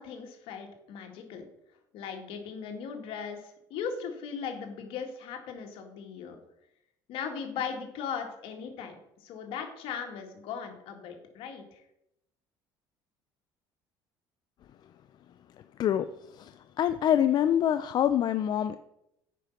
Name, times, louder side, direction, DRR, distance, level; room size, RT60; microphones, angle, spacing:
voice 1, 0.0-1.5 1.9-6.4 7.1-11.8, left 6 dB, 70° left, 4 dB, 1.9 m, -38 dB
voice 2, 16.3-18.8, left 10 dB, 50° left, 11 dB, 0.4 m, -25 dB
9.3 x 5.3 x 5.8 m, 0.83 s
supercardioid pair, 100°, 10 cm